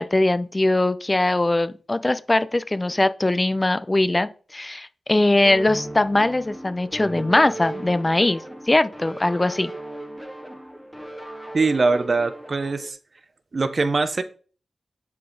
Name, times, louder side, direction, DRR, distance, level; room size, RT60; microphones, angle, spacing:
voice 1, 0.0-9.7, left 2 dB, 25° left, 0.4 m, -21 dB
sound 1, 5.4-12.9, right 1 dB, ahead, 1.1 m, -37 dB
voice 2, 11.5-13.0 13.5-14.2, right 3 dB, 50° right, 0.6 m, -22 dB
9.4 x 4.0 x 3.8 m
wide cardioid pair, 75°, 0 cm